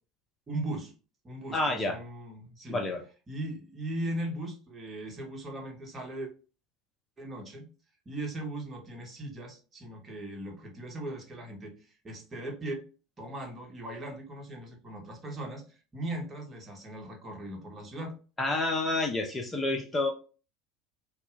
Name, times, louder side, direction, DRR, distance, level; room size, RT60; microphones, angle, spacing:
voice 1, 0.5-0.9 1.2-2.8 3.3-6.3 7.2-7.6 8.0-11.7 12.0-12.8 13.2-18.2, right 1 dB, 25° right, 1 dB, 1.2 m, -38 dB
voice 2, 1.5-2.0 2.7-3.0 18.4-20.1, left 2 dB, 20° left, 2 dB, 0.6 m, -29 dB
4.1 x 2.3 x 2.5 m, 0.35 s
figure-of-eight pair, 75°, 0 cm